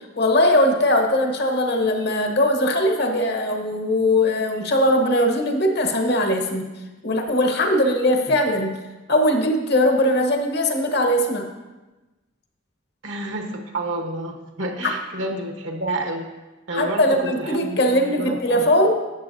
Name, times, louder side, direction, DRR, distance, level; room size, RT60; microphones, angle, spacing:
voice 1, 0.2-6.7 7.0-8.8 9.1-11.5 14.8-14.9 16.7-19.0, left 1 dB, 60° left, 4 dB, 1.1 m, -20 dB
voice 2, 13.0-16.3 16.7-18.7, right 1 dB, 75° right, 3 dB, 1.2 m, -29 dB
12.5 x 7.9 x 2.7 m, 1.1 s
head